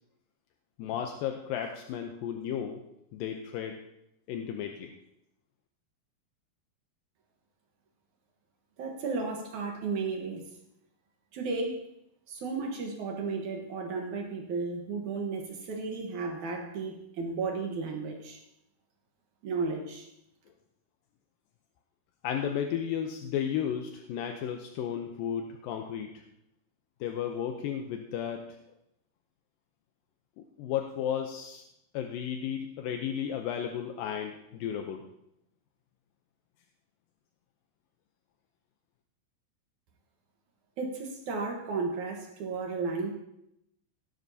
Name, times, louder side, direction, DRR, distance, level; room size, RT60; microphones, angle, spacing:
voice 1, 0.8-2.8 3.1-3.8 4.3-4.9 22.2-26.2 27.0-28.6 30.4-31.6 31.9-35.0, left 9 dB, 80° left, 4 dB, 2.0 m, -34 dB
voice 2, 8.8-10.4 11.3-11.8 12.3-18.4 19.4-20.1 40.8-43.1, right 4 dB, 60° right, 1 dB, 2.2 m, -34 dB
17.0 x 12.0 x 2.8 m, 0.81 s
omnidirectional pair, 4.8 m